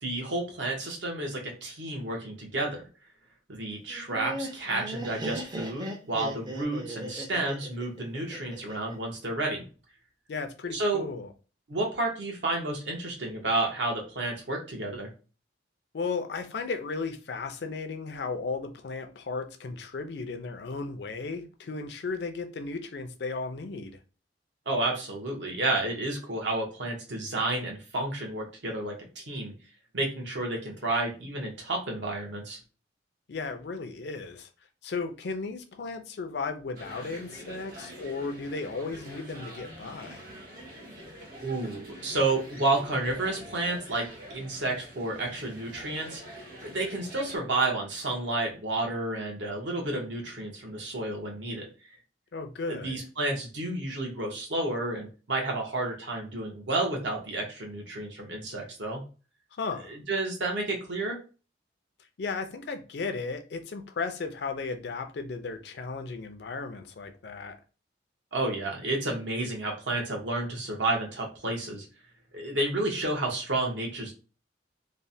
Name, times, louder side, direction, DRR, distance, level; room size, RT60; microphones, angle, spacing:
voice 1, 0.0-2.8 3.5-9.6 10.7-11.0 11.7-15.1 24.7-29.5 29.9-32.6 41.4-44.1 44.3-51.7 52.7-59.0 59.9-61.2 68.3-71.9 72.3-74.1, right 2 dB, 70° right, 1.0 m, -31 dB
Laughter, 3.9-8.9, right 1 dB, 20° right, 0.4 m, -37 dB
voice 2, 10.3-11.3 15.9-24.0 33.3-34.5 34.8-40.2 52.3-53.0 59.6-59.9 62.2-67.5, left 4 dB, 60° left, 0.4 m, -35 dB
sound 1, 36.8-47.4, equal, 50° right, 1.1 m, -46 dB
3.1 x 2.1 x 2.6 m
head